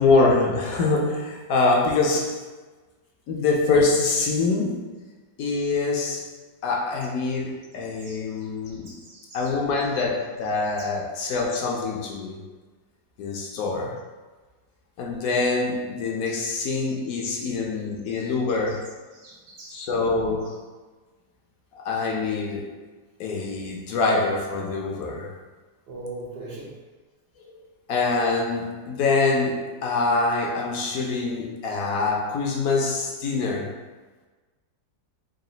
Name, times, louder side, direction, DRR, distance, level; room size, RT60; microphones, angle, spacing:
voice 1, 0.0-2.4 3.3-4.9 5.4-6.3 6.6-9.0 9.3-12.4 13.2-14.0 15.0-18.9 19.7-20.6 21.7-22.7 23.2-25.3 27.9-33.7, left 3 dB, 65° left, 0 dB, 1.0 m, -24 dB
voice 2, 8.1-8.4 8.9-9.6 10.8-10.9 13.6-13.9 16.3-16.4 17.3-17.5 18.1-18.3 19.1-19.8 25.9-26.7, right 2 dB, 70° right, -4 dB, 1.5 m, -41 dB
3.9 x 2.4 x 3.8 m, 1.3 s
omnidirectional pair, 1.8 m